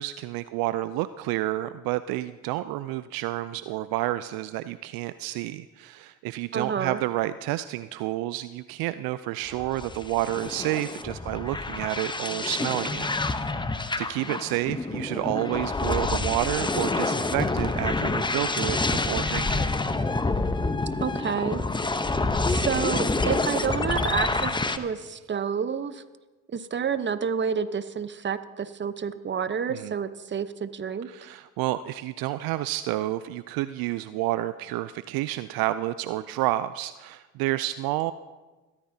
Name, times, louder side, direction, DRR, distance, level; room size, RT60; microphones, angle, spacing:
voice 1, 0.0-13.6 14.0-19.7 29.7-29.9 31.1-38.1, right 15 dB, 65° right, 14 dB, 0.5 m, -30 dB
voice 2, 6.5-7.0 21.0-21.6 22.5-26.0 26.5-31.1, right 7 dB, 30° right, 12 dB, 0.9 m, -29 dB
sound 1, 9.5-24.8, left 3 dB, 10° left, 0.9 m, -27 dB
22.0 x 14.5 x 2.8 m, 1.2 s
hypercardioid pair, 60°, 39 cm